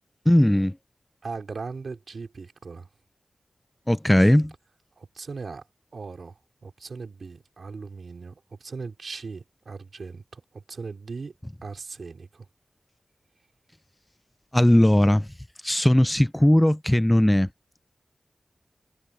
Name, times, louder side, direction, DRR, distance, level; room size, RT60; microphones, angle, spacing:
voice 1, 0.3-0.7 3.9-4.5 14.5-15.3 15.6-17.5, left 1 dB, 10° left, 0.4 m, -18 dB
voice 2, 1.2-2.9 5.0-5.6 5.9-11.3 11.6-12.5, right 4 dB, 80° right, 3.6 m, -38 dB
wide cardioid pair, 75°, 0 cm